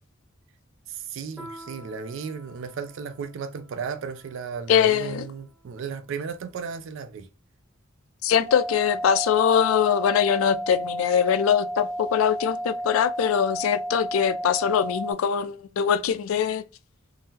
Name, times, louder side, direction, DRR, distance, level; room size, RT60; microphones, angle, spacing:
voice 1, 0.9-7.3, right 6 dB, 65° right, 0.4 m, -35 dB
Piano, 1.4-6.3, right 1 dB, 5° right, 0.7 m, -49 dB
voice 2, 4.7-5.3 8.2-16.6, left 8 dB, 80° left, 0.3 m, -22 dB
sound 1, 8.5-15.1, equal, 50° right, 0.9 m, -32 dB
3.7 x 2.0 x 2.7 m
head